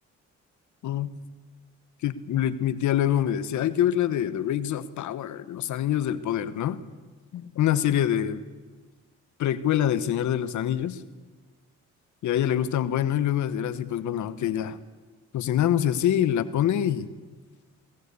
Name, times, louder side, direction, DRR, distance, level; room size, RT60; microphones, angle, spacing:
voice 1, 0.8-1.2 2.0-6.8 7.3-8.4 9.4-11.0 12.2-14.8 15.3-17.1, left 10 dB, 75° left, 13 dB, 1.2 m, -25 dB
22.0 x 19.0 x 8.4 m, 1.4 s
cardioid pair, 90°, 30 cm